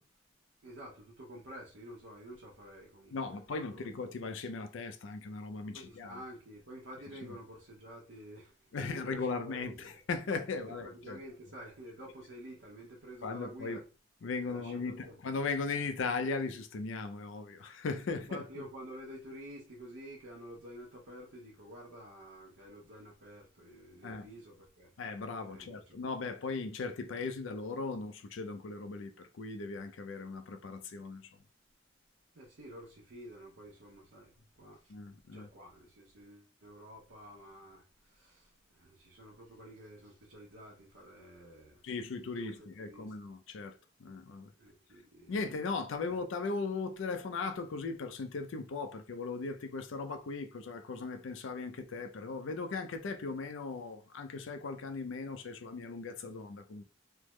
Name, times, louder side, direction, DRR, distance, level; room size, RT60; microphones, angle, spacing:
voice 1, 0.6-3.8 5.7-10.0 10.8-13.8 14.5-15.1 18.3-24.9 25.5-26.0 32.3-34.9 35.3-41.8 42.4-43.1 44.6-45.3 46.0-46.1, equal, 75° right, 0.7 m, -50 dB
voice 2, 3.1-6.2 7.2-7.4 8.7-11.2 13.2-13.8 14.2-18.6 24.0-24.3 25.0-31.3 34.9-35.5 41.8-44.5 45.3-56.8, left 4 dB, 80° left, 0.4 m, -38 dB
3.2 x 2.0 x 3.1 m
head